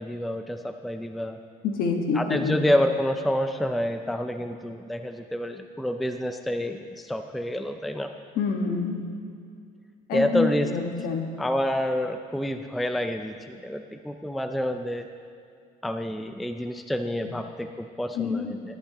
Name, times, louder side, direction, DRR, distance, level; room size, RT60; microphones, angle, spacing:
voice 1, 0.0-1.4 2.1-8.1 10.1-10.7 11.4-15.1 15.8-18.6, equal, ahead, 6 dB, 0.4 m, -28 dB
voice 2, 1.6-2.6 8.3-9.1 10.1-11.3 17.2-17.3 18.1-18.6, left 5 dB, 65° left, 3 dB, 1.5 m, -27 dB
21.5 x 11.5 x 3.0 m, 2.4 s
cardioid pair, 165°, 16 cm